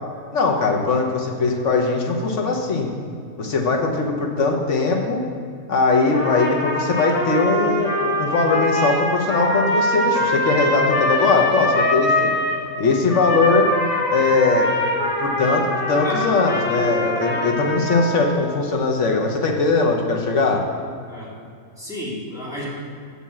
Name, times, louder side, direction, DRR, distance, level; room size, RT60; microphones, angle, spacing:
voice 1, 0.3-2.9 3.4-5.2 5.7-12.3 12.8-13.7 14.1-14.7 15.2-20.6, left 3 dB, 55° left, 1 dB, 1.2 m, -20 dB
Trumpet, 6.1-12.6 13.1-18.4, left 1 dB, 40° left, 1.4 m, -23 dB
voice 2, 21.8-22.6, left 1 dB, ahead, -8 dB, 2.2 m, -32 dB
7.1 x 5.6 x 7.3 m, 2.2 s
omnidirectional pair, 1.5 m